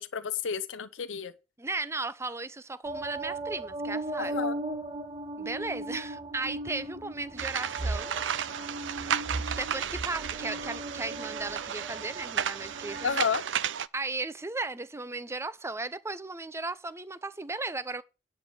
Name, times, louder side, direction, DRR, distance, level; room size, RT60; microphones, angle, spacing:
voice 1, 0.0-1.3 4.2-4.5 13.0-13.4, left 6 dB, 90° left, 0.6 m, -31 dB
voice 2, 1.6-4.4 5.4-8.1 9.5-13.2 13.9-18.0, right 3 dB, 15° right, 0.6 m, -36 dB
sound 1, 2.8-13.1, right 2 dB, 30° right, 1.5 m, -37 dB
sound 2, 7.4-13.9, right 8 dB, 70° right, 0.5 m, -33 dB
10.0 x 4.7 x 7.8 m
head